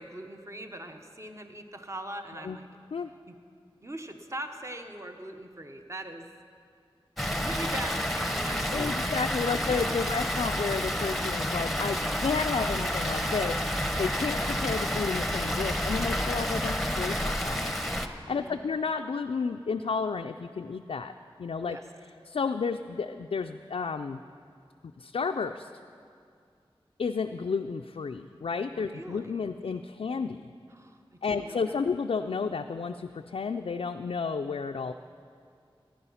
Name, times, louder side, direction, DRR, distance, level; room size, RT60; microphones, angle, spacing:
voice 1, 0.0-2.7 3.3-3.4 3.8-6.3 7.4-9.1 9.4-10.0 18.3-18.6 21.6-21.8 28.8-29.5 30.7-31.8, right 1 dB, 30° right, 5 dB, 1.0 m, -41 dB
Water, 7.2-18.1, equal, ahead, 0.9 m, -29 dB
voice 2, 8.7-17.7 18.3-21.1 21.4-21.8 22.3-24.2 25.0-25.7 27.0-30.4 31.2-34.9, left 5 dB, 85° left, 5 dB, 0.4 m, -32 dB
15.0 x 10.5 x 5.7 m, 2.3 s
wide cardioid pair, 40°, 10 cm